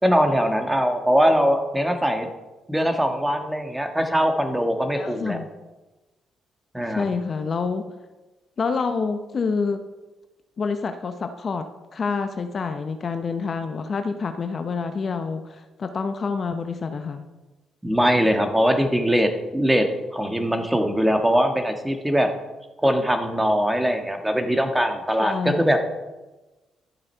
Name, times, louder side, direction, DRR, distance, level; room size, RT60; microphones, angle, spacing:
voice 1, 0.0-2.3 2.7-5.4 6.7-7.0 17.8-19.9 20.1-22.3 22.8-25.8, equal, 10° right, 5 dB, 1.7 m, -21 dB
voice 2, 4.9-5.5 6.9-7.8 8.6-9.8 10.6-11.6 11.9-17.3 25.2-25.7, left 5 dB, 50° left, 8 dB, 0.8 m, -27 dB
12.5 x 7.5 x 4.6 m, 1.1 s
hypercardioid pair, 50°, 0 cm